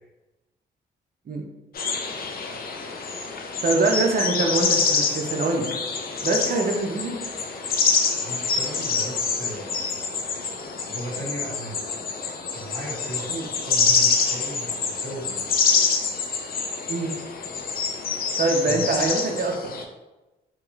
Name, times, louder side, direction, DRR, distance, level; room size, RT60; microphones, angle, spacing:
sound 1, 1.7-19.8, left 5 dB, 45° left, 0.5 m, -26 dB
voice 1, 3.6-5.7 6.2-7.2 13.3-13.5 16.9-17.1 18.4-19.7, right 3 dB, 45° right, 2 dB, 0.6 m, -24 dB
voice 2, 8.2-9.9 10.9-11.8 12.5-15.5 18.6-18.8, right 1 dB, 65° left, -5 dB, 1.4 m, -36 dB
2.9 x 2.9 x 2.4 m, 1.1 s
supercardioid pair, 55°, 21 cm